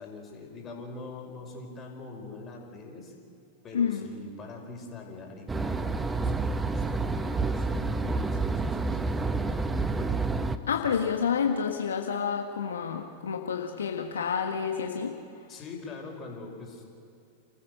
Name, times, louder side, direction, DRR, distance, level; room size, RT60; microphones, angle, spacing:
voice 1, 0.0-3.1 3.6-10.2 10.7-11.0 15.5-16.8, left 3 dB, 30° left, 1 dB, 5.2 m, -43 dB
voice 2, 3.7-4.1 10.7-15.2, left 7 dB, 80° left, 3 dB, 1.5 m, -29 dB
sound 1, 5.5-10.6, right 3 dB, 15° right, 1.0 m, -29 dB
29.0 x 15.0 x 6.6 m, 2.5 s
hypercardioid pair, 95°, 0 cm